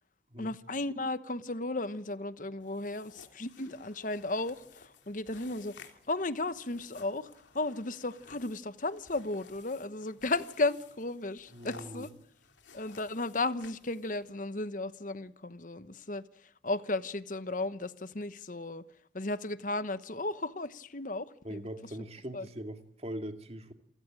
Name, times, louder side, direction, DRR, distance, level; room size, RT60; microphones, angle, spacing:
voice 1, 0.4-12.1 12.7-18.8 19.1-21.7 22.3-22.5, left 2 dB, 45° left, 1.1 m, -35 dB
sound 1, 2.6-14.3, left 5 dB, 85° left, 3.1 m, -56 dB
voice 2, 11.5-12.1 21.4-23.7, equal, 35° right, 2.3 m, -41 dB
28.5 x 15.5 x 8.9 m
head